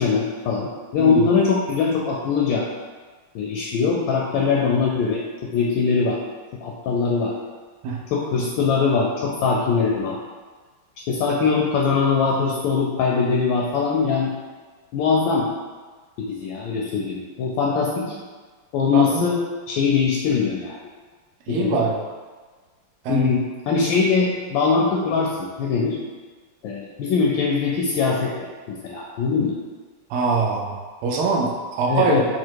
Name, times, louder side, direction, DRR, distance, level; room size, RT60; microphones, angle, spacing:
voice 1, 0.0-2.7 3.3-6.2 6.6-7.3 8.1-10.2 11.1-14.3 14.9-15.5 16.2-18.1 18.7-19.4 19.7-20.9 21.5-21.8 23.1-26.0 26.6-29.5 31.9-32.3, left 5 dB, 75° left, -2 dB, 1.2 m, -22 dB
voice 2, 18.9-19.3 21.5-22.0 23.0-23.3 30.1-30.7 31.0-32.2, right 4 dB, 80° right, -2 dB, 1.6 m, -23 dB
4.3 x 2.4 x 4.5 m, 1.4 s
omnidirectional pair, 2.3 m